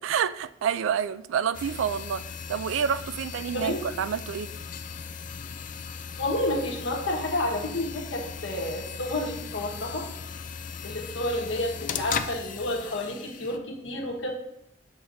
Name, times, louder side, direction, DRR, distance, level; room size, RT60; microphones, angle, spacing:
voice 1, 0.0-4.5, right 7 dB, 85° right, 0.3 m, -28 dB
sound 1, 1.5-13.6, left 6 dB, 45° left, 0.3 m, -37 dB
voice 2, 6.2-10.1 10.8-14.3, left 1 dB, 75° left, 1.3 m, -30 dB
8.3 x 5.9 x 2.6 m
head